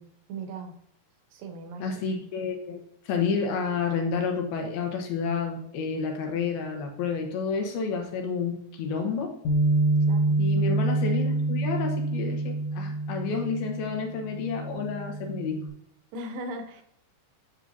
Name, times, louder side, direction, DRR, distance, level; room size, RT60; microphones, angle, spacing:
voice 1, 0.3-0.7 1.3-1.9 10.1-10.4 16.1-16.8, right 2 dB, 75° right, 5 dB, 2.3 m, -38 dB
voice 2, 1.8-2.8 3.1-9.3 10.4-15.6, left 5 dB, 85° left, 2 dB, 3.2 m, -30 dB
Bass guitar, 9.4-15.7, right 2 dB, 65° left, 1.4 m, -27 dB
8.6 x 6.5 x 2.7 m, 0.71 s
omnidirectional pair, 4.2 m